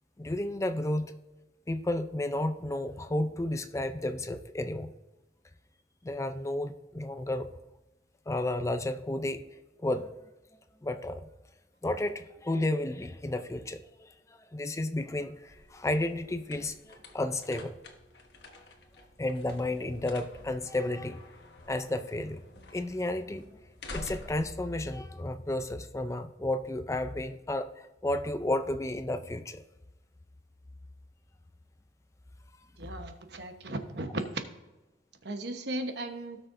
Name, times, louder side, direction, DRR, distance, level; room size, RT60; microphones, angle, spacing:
voice 1, 0.2-1.1 1.7-4.9 6.0-7.6 8.3-9.4 9.8-10.1 10.8-11.3 11.8-17.8 19.2-21.3 21.7-22.4 22.7-23.5 23.9-29.6, left 1 dB, 15° left, 9 dB, 0.4 m, -32 dB
sound 1, 15.2-25.8, left 2 dB, 70° left, 1.2 m, -49 dB
voice 2, 32.8-34.4 35.2-36.4, right 2 dB, 70° right, 6 dB, 1.1 m, -36 dB
17.0 x 6.4 x 2.6 m, 1.1 s
head